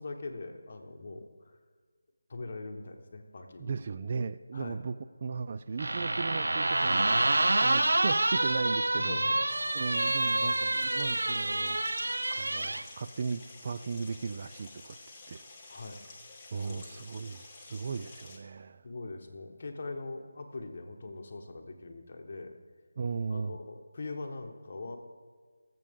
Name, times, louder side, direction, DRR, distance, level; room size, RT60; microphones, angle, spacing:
voice 1, 0.0-1.5 2.3-3.8 4.5-4.8 9.0-9.5 10.4-10.6 15.7-16.0 16.7-17.3 18.8-22.5 23.3-25.0, left 3 dB, 45° left, 4 dB, 1.2 m, -42 dB
voice 2, 3.6-9.2 9.7-11.8 12.3-15.0 15.3-15.4 16.5-18.8 23.0-23.6, right 5 dB, 35° right, 12 dB, 0.3 m, -36 dB
sound 1, 5.8-12.8, right 2 dB, 80° right, 0.6 m, -28 dB
sound 2, 9.5-18.4, left 3 dB, 15° left, 1.2 m, -50 dB
18.5 x 7.6 x 3.7 m, 1.5 s
figure-of-eight pair, 170°, 0 cm